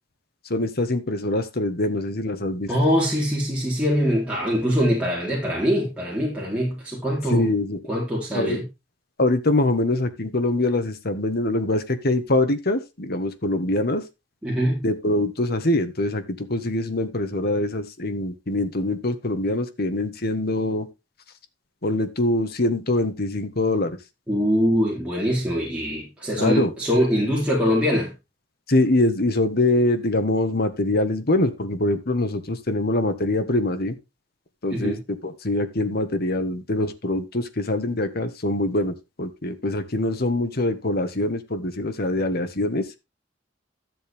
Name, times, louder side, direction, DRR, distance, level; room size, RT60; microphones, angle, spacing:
voice 1, 0.5-2.7 7.3-7.8 8.3-8.6 9.2-14.1 14.8-20.9 21.8-24.0 26.4-26.7 28.7-34.0 34.6-42.9, left 2 dB, 55° left, 1.5 m, -24 dB
voice 2, 2.7-7.5 7.9-8.6 14.4-14.8 24.3-28.1 34.7-35.0, equal, 5° right, 3.9 m, -23 dB
13.0 x 7.7 x 3.6 m
head